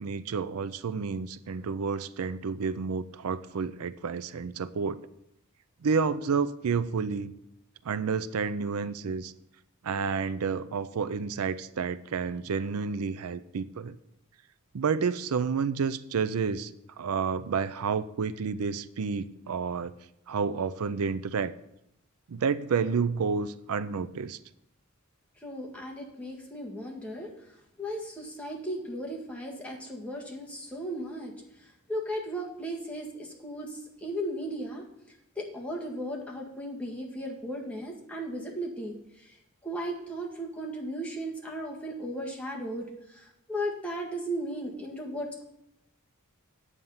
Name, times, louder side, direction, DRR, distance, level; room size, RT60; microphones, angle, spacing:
voice 1, 0.0-5.1 5.8-7.3 7.8-9.3 9.8-14.0 14.7-16.7 17.0-19.9 20.3-21.5 22.3-24.4, right 5 dB, 80° right, 15 dB, 0.5 m, -30 dB
voice 2, 25.4-27.3 27.8-31.3 31.6-34.8 35.4-39.4 39.6-45.4, equal, 5° left, -2 dB, 1.7 m, -36 dB
9.2 x 8.2 x 5.6 m, 0.82 s
head